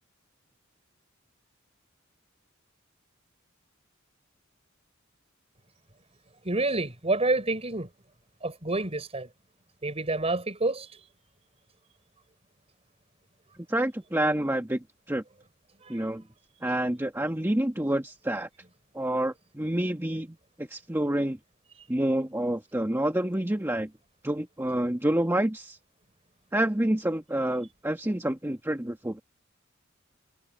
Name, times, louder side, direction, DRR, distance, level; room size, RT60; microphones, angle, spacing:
voice 1, 6.4-7.9 8.4-9.3 9.8-10.9 15.8-16.0, right 2 dB, 30° right, 4.9 m, -28 dB
voice 2, 13.7-14.8 15.1-15.2 15.9-16.2 16.6-18.5 18.9-21.4 21.9-23.9 24.2-25.8 26.5-29.2, right 1 dB, 10° right, 1.4 m, -28 dB
head